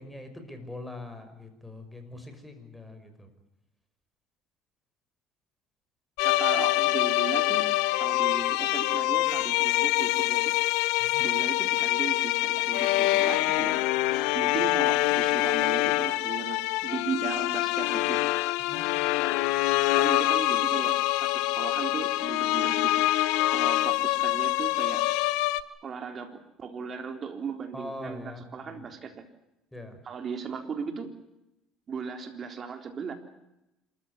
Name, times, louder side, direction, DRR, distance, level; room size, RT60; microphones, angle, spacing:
voice 1, 0.0-3.3 11.0-11.3 18.6-18.9 27.7-28.9 29.7-30.0, left 2 dB, 5° left, 7 dB, 5.7 m, -43 dB
sound 1, 6.2-25.6, left 17 dB, 85° left, 0.9 m, -25 dB
voice 2, 6.2-7.7 8.0-10.5 11.2-13.8 14.3-18.2 20.0-22.9 23.5-25.0 25.8-29.2 30.0-31.1 31.9-33.1, right 6 dB, 40° right, 6 dB, 3.8 m, -37 dB
27.0 x 14.5 x 9.8 m, 0.89 s
supercardioid pair, 100°, 0 cm